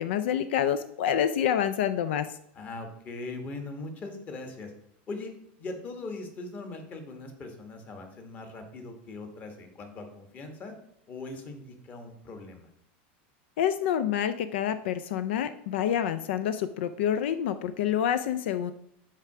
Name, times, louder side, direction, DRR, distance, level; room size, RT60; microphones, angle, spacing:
voice 1, 0.0-2.3 13.6-18.7, left 9 dB, 80° left, 12 dB, 0.4 m, -27 dB
voice 2, 2.5-4.7 5.1-5.3 5.6-10.7 11.1-12.7, left 3 dB, 25° left, 5 dB, 1.2 m, -40 dB
5.7 x 4.6 x 5.9 m, 0.72 s
supercardioid pair, 150°, 6 cm